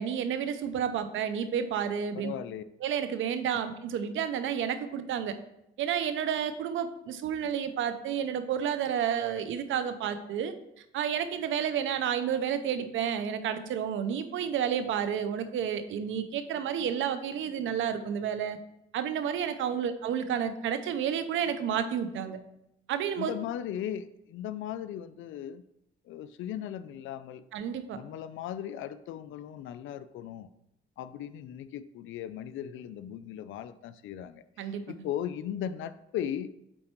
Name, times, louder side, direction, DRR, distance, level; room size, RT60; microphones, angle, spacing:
voice 1, 0.0-2.3 2.8-5.4 5.8-10.5 10.9-18.6 18.9-22.4 22.9-23.3 27.5-28.0 34.6-35.1, right 8 dB, 75° right, 11 dB, 0.7 m, -31 dB
voice 2, 2.1-2.6 23.2-25.6 26.1-27.5 27.9-30.5 31.0-36.5, left 10 dB, 80° left, 14 dB, 0.4 m, -37 dB
7.6 x 4.3 x 4.5 m, 0.83 s
cardioid pair, 90°, 20 cm